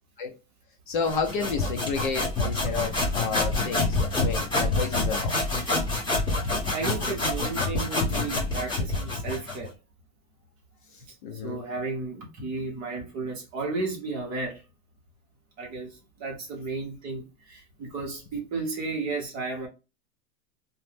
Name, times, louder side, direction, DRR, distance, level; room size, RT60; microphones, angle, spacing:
voice 1, 0.9-5.4 11.2-11.6, left 5 dB, 40° left, 0.4 m, -31 dB
sound 1, 1.0-9.7, left 2 dB, 10° left, 0.8 m, -27 dB
voice 2, 6.7-9.7 11.4-14.6 15.6-19.7, right 3 dB, 20° right, 0.7 m, -33 dB
2.9 x 2.1 x 3.3 m
supercardioid pair, 170°, 40 cm